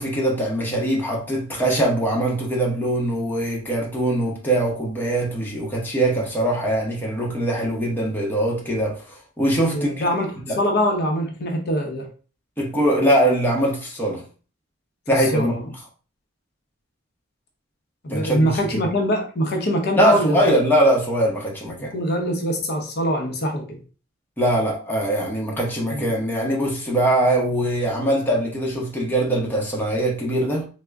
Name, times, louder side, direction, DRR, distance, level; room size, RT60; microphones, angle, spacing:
voice 1, 0.0-10.0 10.5-10.6 12.6-14.2 15.1-15.6 18.1-18.9 20.0-21.9 24.4-30.6, right 1 dB, 10° left, 0.8 m, -22 dB
voice 2, 9.7-12.1 15.3-15.6 18.0-20.5 21.9-23.8 25.9-26.1, equal, 50° left, 0.7 m, -23 dB
3.6 x 2.1 x 3.4 m
head